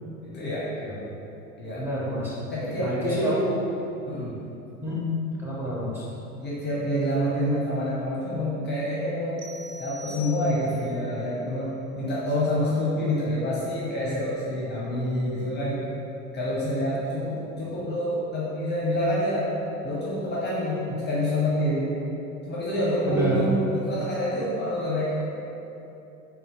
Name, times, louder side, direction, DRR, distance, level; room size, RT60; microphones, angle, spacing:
voice 1, 0.2-0.7 1.6-1.9 2.5-3.2 4.1-4.3 6.4-9.4 9.8-15.8 16.3-19.5 19.8-22.0 22.5-25.2, equal, 25° left, -6 dB, 0.7 m, -27 dB
voice 2, 1.7-2.5 2.8-3.6 4.8-5.0 5.4-6.0 23.0-23.5, equal, 5° right, -7 dB, 0.9 m, -28 dB
sound 1, 9.4-10.9, left 1 dB, 65° right, 0.6 m, -44 dB
3.6 x 2.3 x 3.7 m, 2.9 s
figure-of-eight pair, 70°, 41 cm